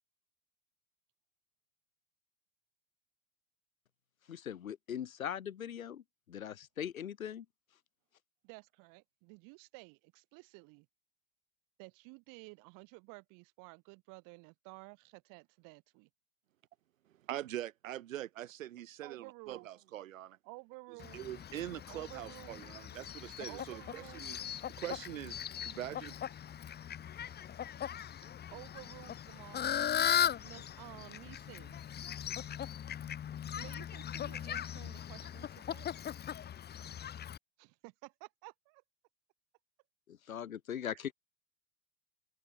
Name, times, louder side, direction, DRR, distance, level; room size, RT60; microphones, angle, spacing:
voice 1, 4.3-7.5 40.1-41.1, left 9 dB, 75° left, 7.2 m, -40 dB
voice 2, 8.4-10.9 11.8-16.1 19.0-19.7 20.4-21.2 21.8-22.6 23.4-24.3 28.5-29.7 30.4-31.8 33.6-36.1 37.6-38.8 40.9-41.0, right 30 dB, 50° right, 7.8 m, -53 dB
voice 3, 17.3-20.4 21.1-24.4 24.8-26.1, right 13 dB, 70° right, 5.8 m, -43 dB
Fowl, 21.0-37.4, left 9 dB, 25° left, 1.6 m, -39 dB
hypercardioid pair, 95°, 41 cm